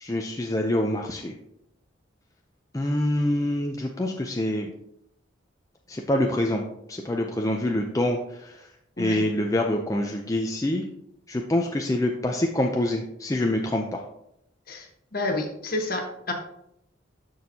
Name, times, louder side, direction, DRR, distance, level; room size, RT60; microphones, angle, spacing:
voice 1, 0.0-1.3 2.7-4.7 5.9-6.6 6.9-8.7 9.0-10.8 11.3-14.0, left 1 dB, 15° left, 2 dB, 0.5 m, -26 dB
voice 2, 15.1-16.3, left 2 dB, 50° left, 2 dB, 1.3 m, -29 dB
12.5 x 4.4 x 2.8 m, 0.77 s
head